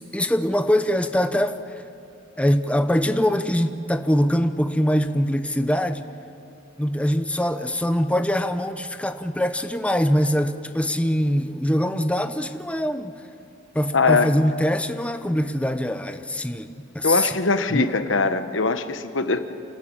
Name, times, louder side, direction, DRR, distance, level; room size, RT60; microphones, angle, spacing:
voice 1, 0.0-1.6 2.4-6.0 6.8-13.2 13.7-17.3 17.7-18.0, equal, 5° left, 8 dB, 0.7 m, -23 dB
voice 2, 13.9-14.3 17.0-19.4, left 4 dB, 85° left, 10 dB, 1.1 m, -21 dB
28.5 x 13.5 x 8.7 m, 2.7 s
head